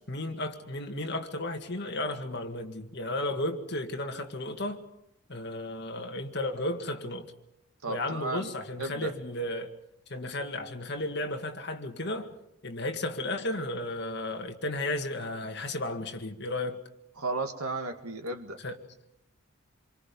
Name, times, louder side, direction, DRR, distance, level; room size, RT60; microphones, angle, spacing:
voice 1, 0.1-4.8 5.3-7.3 7.9-9.7 10.1-12.3 12.6-16.8 18.6-18.8, left 1 dB, 50° left, 2.0 m, -34 dB
voice 2, 7.8-8.5 8.8-9.1 17.2-18.6, right 3 dB, 85° right, 2.2 m, -34 dB
27.5 x 23.5 x 5.4 m
head